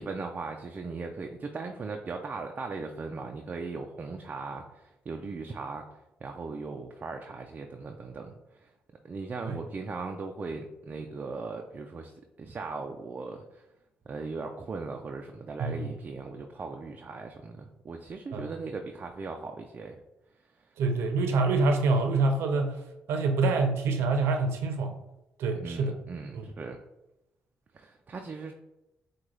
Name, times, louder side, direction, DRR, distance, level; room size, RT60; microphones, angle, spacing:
voice 1, 0.0-5.8 6.2-8.7 9.0-12.1 12.4-13.6 14.1-20.0 25.6-26.8 27.7-28.5, right 4 dB, 40° right, 3 dB, 0.4 m, -38 dB
voice 2, 20.8-22.8 23.1-25.0 25.4-25.9 26.3-26.4, right 3 dB, 80° right, 5 dB, 0.7 m, -26 dB
6.1 x 2.3 x 3.2 m, 0.91 s
cardioid pair, 75°, 4 cm